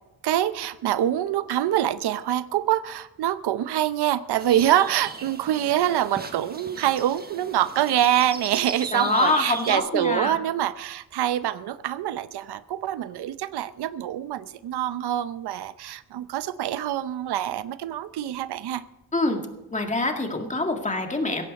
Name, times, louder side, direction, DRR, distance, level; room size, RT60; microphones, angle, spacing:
voice 1, 0.2-18.8, right 11 dB, 85° right, 14 dB, 0.8 m, -25 dB
sound 1, 4.4-9.8, right 4 dB, 25° right, 1.3 m, -38 dB
voice 2, 8.9-10.4 19.1-19.4 19.7-21.4, left 2 dB, 20° left, 4 dB, 2.0 m, -25 dB
16.0 x 15.0 x 4.2 m, 0.98 s
cardioid pair, 130°, 38 cm